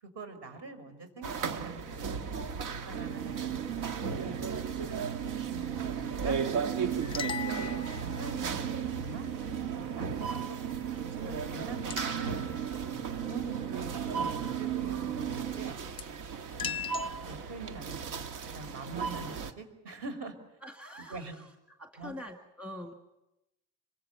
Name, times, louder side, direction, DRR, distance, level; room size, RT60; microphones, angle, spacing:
voice 1, 0.0-2.5 2.9-4.6 5.7-6.4 7.0-8.6 9.0-9.3 9.7-10.6 11.0-12.4 13.2-13.9 14.2-15.8 16.9-20.4 21.0-21.3 22.0-22.1, right 3 dB, 50° right, 7 dB, 5.3 m, -44 dB
sound 1, 1.2-19.5, right 5 dB, 85° right, 1.8 m, -37 dB
sound 2, 2.9-15.7, right 10 dB, 65° right, 1.7 m, -37 dB
voice 2, 5.4-5.9 20.6-21.5 21.8-22.9, left 1 dB, 5° right, 3 dB, 1.9 m, -45 dB
sound 3, 7.0-8.5 11.9-13.1 16.0-16.1 16.6-17.1, left 7 dB, 15° left, 0.8 m, -39 dB
26.5 x 23.0 x 6.9 m, 0.92 s
cardioid pair, 145°, 32 cm